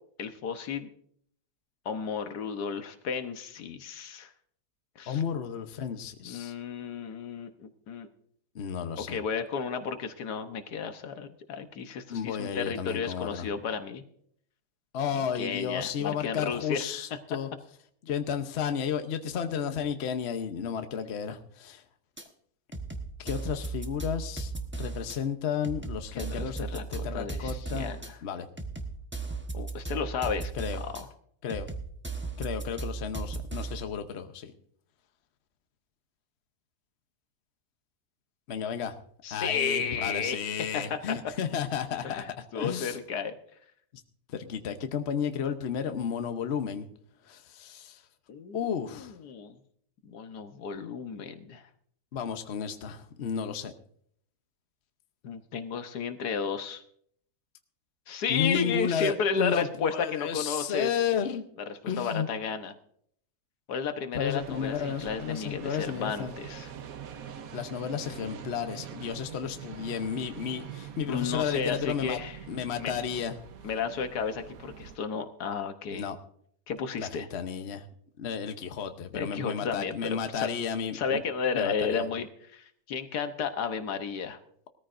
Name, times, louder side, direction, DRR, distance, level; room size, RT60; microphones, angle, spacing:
voice 1, 0.2-0.9 1.8-4.3 5.0-5.2 6.2-8.1 9.1-14.0 15.1-16.8 26.1-28.2 29.5-30.5 30.8-31.1 39.2-40.4 40.7-41.2 42.0-43.4 48.3-49.6 50.0-51.7 55.2-56.8 58.1-60.9 61.7-62.7 63.7-66.7 71.1-72.4 72.8-72.9 73.6-76.1 76.7-77.3 79.1-80.5 80.9-84.4, left 6 dB, 85° left, 8 dB, 1.6 m, -33 dB
voice 2, 5.1-6.5 8.5-9.2 12.1-13.5 14.9-17.5 18.0-21.8 23.2-24.5 24.8-27.9 28.2-28.5 30.5-30.8 31.4-31.7 32.4-34.5 38.5-38.9 39.3-43.0 44.3-46.9 47.2-48.0 48.5-49.1 52.1-53.7 58.3-61.4 61.9-62.3 64.1-66.4 67.5-72.2 72.5-73.4 75.9-76.2 76.9-77.8 78.2-81.2 81.5-82.1, left 7 dB, 50° left, 8 dB, 1.1 m, -32 dB
sound 1, 22.2-22.3 22.7-25.2 25.6-28.1 28.6-31.0 31.5-33.9, right 3 dB, 10° right, 1.0 m, -36 dB
sound 2, 64.3-75.0, right 8 dB, 65° right, 1.3 m, -44 dB
20.0 x 14.0 x 2.6 m, 0.65 s
omnidirectional pair, 1.7 m